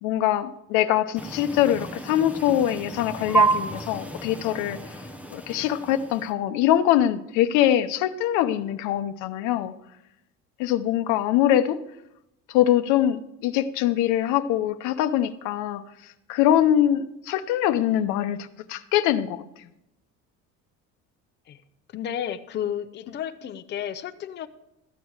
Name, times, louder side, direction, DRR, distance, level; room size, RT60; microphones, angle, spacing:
voice 1, 0.0-5.0 5.3-9.7 10.6-11.8 12.5-19.7, left 11 dB, 90° left, 10 dB, 0.7 m, -23 dB
sound 1, 1.1-6.3, right 4 dB, 5° right, 0.6 m, -29 dB
voice 2, 21.9-24.5, left 9 dB, 35° left, 8 dB, 0.6 m, -32 dB
14.0 x 9.0 x 4.7 m, 0.85 s
cardioid pair, 150°, 29 cm